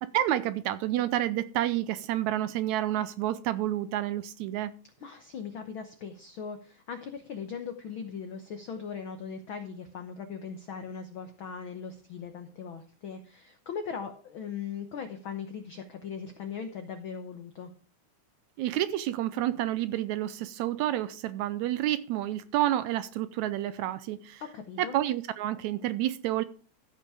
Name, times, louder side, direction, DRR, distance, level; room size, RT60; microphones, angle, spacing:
voice 1, 0.0-4.7 18.6-24.4 24.9-26.4, right 13 dB, 80° right, 1.8 m, -29 dB
voice 2, 5.0-17.7 24.4-24.9, left 6 dB, 85° left, 1.1 m, -39 dB
14.5 x 5.6 x 4.8 m
omnidirectional pair, 3.6 m